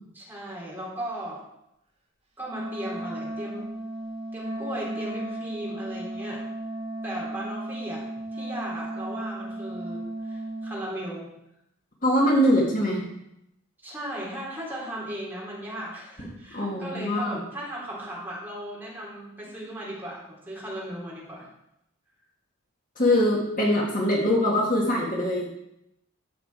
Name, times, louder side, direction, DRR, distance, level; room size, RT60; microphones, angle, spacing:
voice 1, 0.1-1.4 2.4-3.7 4.3-6.4 7.0-8.0 8.3-11.3 13.8-21.5, right 1 dB, 10° right, -6 dB, 3.3 m, -36 dB
Wind instrument woodwind instrument, 2.5-10.9, right 1 dB, 30° right, 1.8 m, -35 dB
voice 2, 12.0-13.0 16.5-17.4 23.0-25.5, equal, 40° left, -2 dB, 1.9 m, -23 dB
13.0 x 6.0 x 4.7 m, 0.83 s
head